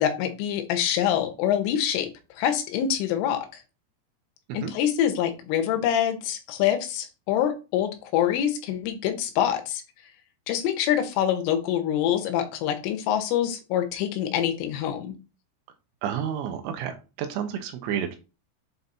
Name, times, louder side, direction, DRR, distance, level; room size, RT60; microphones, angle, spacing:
voice 1, 0.0-2.1 2.4-3.6 4.5-9.8 10.5-15.2, left 10 dB, 80° left, 6 dB, 3.4 m, -25 dB
voice 2, 16.0-18.2, right 9 dB, 80° right, 6 dB, 3.2 m, -30 dB
8.0 x 4.0 x 4.1 m, 0.30 s
omnidirectional pair, 5.9 m